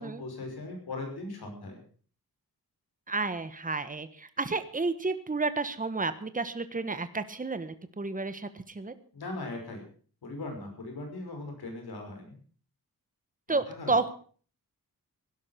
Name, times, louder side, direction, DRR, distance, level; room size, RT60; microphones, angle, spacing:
voice 1, 0.0-1.8 9.1-9.8 10.2-12.4 13.5-13.9, left 2 dB, 85° left, 3 dB, 6.1 m, -39 dB
voice 2, 3.1-8.5 8.7-8.9 13.5-14.1, right 3 dB, 20° right, 11 dB, 1.4 m, -31 dB
17.0 x 12.0 x 5.9 m, 0.43 s
wide cardioid pair, 95°, 37 cm